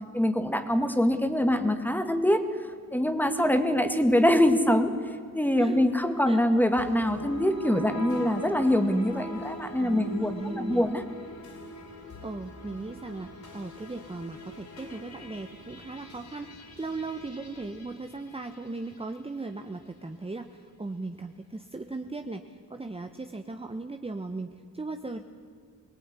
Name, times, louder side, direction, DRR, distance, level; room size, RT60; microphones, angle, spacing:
voice 1, 0.1-2.4 2.9-4.9 5.3-10.3 10.6-11.0, left 1 dB, 5° left, 8 dB, 2.1 m, -24 dB
voice 2, 5.6-5.9 6.3-6.4 9.8-10.9 12.2-25.2, right 3 dB, 15° right, 6 dB, 1.1 m, -38 dB
sound 1, 6.8-19.1, left 1 dB, 55° left, 5.7 m, -42 dB
23.5 x 18.5 x 9.8 m, 2.2 s
cardioid pair, 95°, 34 cm